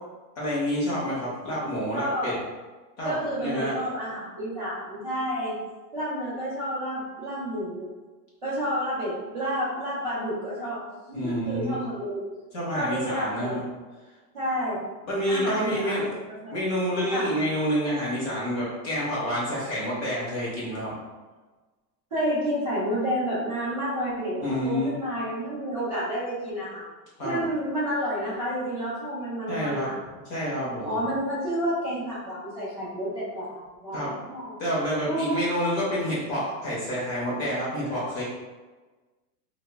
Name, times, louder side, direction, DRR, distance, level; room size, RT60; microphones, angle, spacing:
voice 1, 0.4-2.3 3.0-3.1 3.4-3.7 11.1-11.8 12.5-13.6 15.1-16.1 16.5-21.0 24.4-25.0 27.2-27.4 29.5-29.9 30.3-31.0 33.9-34.1 34.6-38.2, equal, 30° left, -6 dB, 0.6 m, -28 dB
voice 2, 1.9-2.3 3.0-5.6 5.9-7.9 8.4-10.8 11.1-12.2 12.7-13.6 14.3-14.8 15.3-16.1 16.4-16.5 17.1-17.3 22.1-26.8 27.2-30.0 30.8-34.6 35.0-35.4, equal, 25° right, -16 dB, 0.3 m, -30 dB
2.0 x 2.0 x 3.3 m, 1.3 s
supercardioid pair, 165°, 50 cm